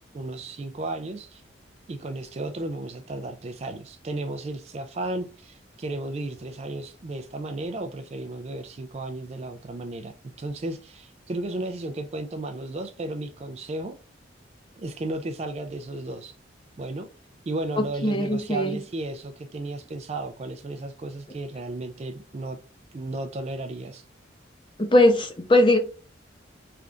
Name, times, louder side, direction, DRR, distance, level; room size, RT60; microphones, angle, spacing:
voice 1, 0.1-1.4 1.9-10.1 10.4-14.0 14.8-16.4 16.8-17.1 17.5-22.6 22.9-24.0, right 2 dB, 35° right, 0.3 m, -34 dB
voice 2, 18.0-18.8 24.8-25.8, left 1 dB, 25° left, 0.7 m, -19 dB
3.4 x 2.4 x 3.7 m
head